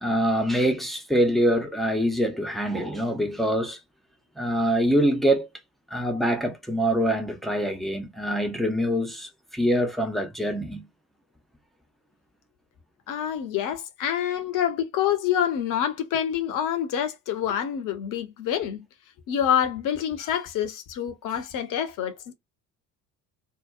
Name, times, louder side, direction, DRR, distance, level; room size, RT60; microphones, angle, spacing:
voice 1, 0.0-3.8 4.4-5.5 5.9-10.9, equal, ahead, 0.5 m, -24 dB
voice 2, 13.1-18.9 19.3-22.3, left 9 dB, 40° left, 0.7 m, -27 dB
2.7 x 2.0 x 2.3 m
figure-of-eight pair, 55°, 50 cm